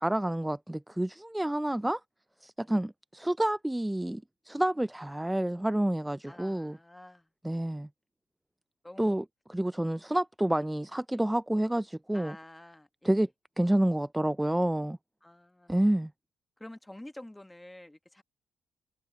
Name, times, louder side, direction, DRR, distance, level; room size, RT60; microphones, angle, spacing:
voice 1, 0.0-2.0 2.4-6.8 7.4-7.9 9.0-12.4 13.0-13.3 13.6-15.0 15.7-16.1, right 1 dB, 5° right, 0.3 m, -29 dB
voice 2, 6.3-7.3 8.8-9.3 12.1-13.2 15.2-15.7 16.6-18.2, left 1 dB, 10° left, 1.3 m, -49 dB
cardioid pair, 90°, 0 cm